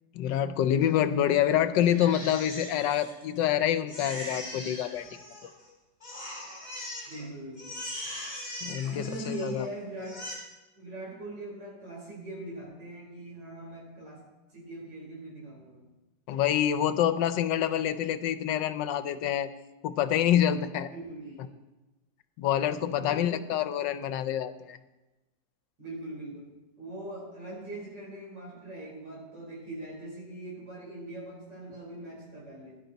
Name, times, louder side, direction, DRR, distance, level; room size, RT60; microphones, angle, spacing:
voice 1, 0.1-5.5 8.6-9.7 16.3-19.5 19.8-20.9 22.4-24.8, left 10 dB, 80° left, 12 dB, 1.3 m, -27 dB
Crying sobbing, 1.8-3.5 3.9-5.7 6.0-7.2 7.5-9.6 10.0-10.3, left 1 dB, 20° left, 4.0 m, -40 dB
voice 2, 7.1-7.8 8.8-10.2 10.7-14.2 14.5-15.9 20.8-21.5 22.8-23.5 25.8-26.5 26.8-32.8, right 1 dB, 70° right, -3 dB, 4.8 m, -41 dB
16.0 x 11.0 x 4.0 m, 1.1 s
omnidirectional pair, 2.0 m